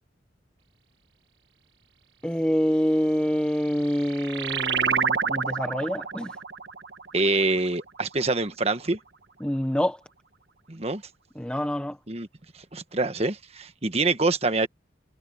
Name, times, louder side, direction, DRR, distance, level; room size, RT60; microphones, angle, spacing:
voice 1, 2.2-6.3 9.4-10.0 11.4-12.0, equal, 5° left, 0.9 m, -26 dB
sound 1, 3.5-8.5, right 6 dB, 80° right, 1.4 m, -29 dB
voice 2, 7.1-9.0 10.7-11.0 12.1-12.3 12.7-14.7, right 3 dB, 35° right, 1.4 m, -25 dB
head